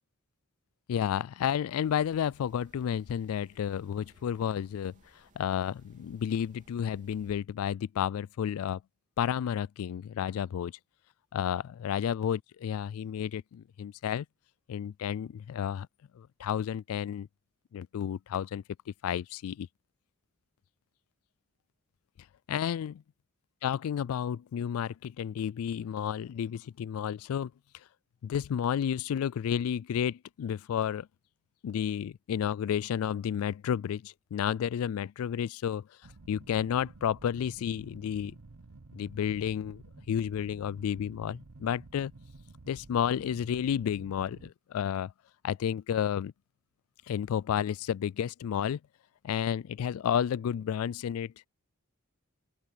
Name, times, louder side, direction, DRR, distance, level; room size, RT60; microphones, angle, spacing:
voice 1, 0.9-4.9 5.4-8.8 9.2-10.7 11.3-14.3 14.7-15.9 16.1-17.3 17.7-18.6 19.0-19.7 22.5-23.0 23.6-27.5 28.2-31.1 31.6-35.8 36.3-38.4 38.9-42.1 42.7-45.1 45.4-46.3 47.1-48.8 49.2-51.5, left 8 dB, 70° left, 0.3 m, -31 dB
sound 1, 1.8-7.4, right 1 dB, 35° right, 3.1 m, -62 dB
sound 2, 36.0-44.5, right 3 dB, 75° right, 0.9 m, -52 dB
open air
head